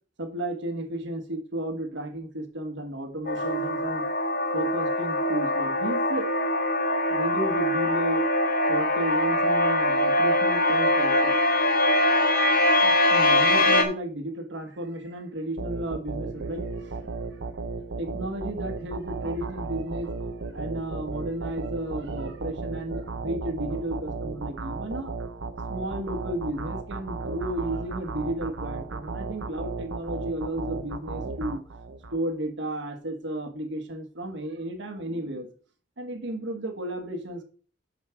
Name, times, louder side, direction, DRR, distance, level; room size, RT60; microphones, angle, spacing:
voice 1, 0.2-4.0 4.5-6.3 7.1-8.2 8.7-11.4 12.8-17.0 18.0-20.1 20.5-25.1 25.7-31.6 32.1-35.5 36.0-37.4, right 1 dB, 65° right, 6 dB, 1.4 m, -33 dB
sound 1, 3.2-13.8, left 1 dB, 50° left, 1.3 m, -23 dB
sound 2, 15.6-32.2, right 3 dB, 85° right, 0.8 m, -35 dB
7.1 x 6.5 x 4.5 m, 0.40 s
head